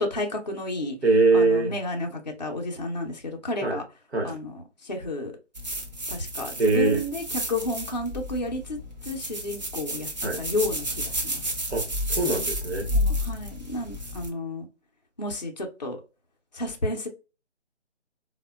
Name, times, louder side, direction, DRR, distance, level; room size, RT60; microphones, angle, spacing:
voice 1, 0.0-1.0 1.3-3.8 4.2-5.3 6.1-8.8 9.0-11.4 12.9-14.7 15.2-16.0 16.5-17.1, left 2 dB, 40° left, 0.4 m, -31 dB
voice 2, 1.0-1.7 3.6-3.8 4.1-4.4 6.6-7.0 10.2-10.4 11.7-12.9, right 3 dB, 60° right, 1.0 m, -22 dB
sound 1, 5.5-14.3, equal, 35° right, 0.5 m, -31 dB
3.4 x 2.1 x 2.2 m
figure-of-eight pair, 160°, 36 cm